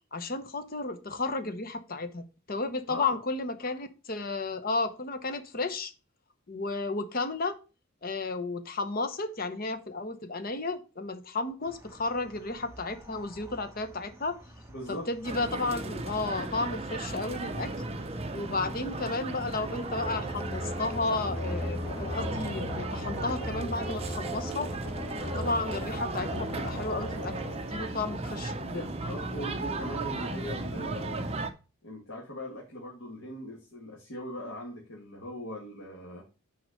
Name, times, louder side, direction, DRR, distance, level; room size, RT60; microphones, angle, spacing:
voice 1, 0.1-5.9 6.5-7.6 8.0-14.4 14.9-17.7 18.3-24.7 25.3-27.3 27.7-28.9, left 3 dB, 45° left, 0.9 m, -33 dB
sound 1, 11.6-27.8, right 1 dB, 15° right, 1.0 m, -52 dB
voice 2, 14.7-15.1 29.0-31.3 31.8-36.2, equal, 70° left, 2.1 m, -40 dB
sound 2, 15.2-31.5, right 2 dB, 30° right, 0.7 m, -36 dB
sound 3, 19.9-28.6, left 1 dB, 15° left, 2.5 m, -38 dB
6.3 x 4.9 x 6.4 m
head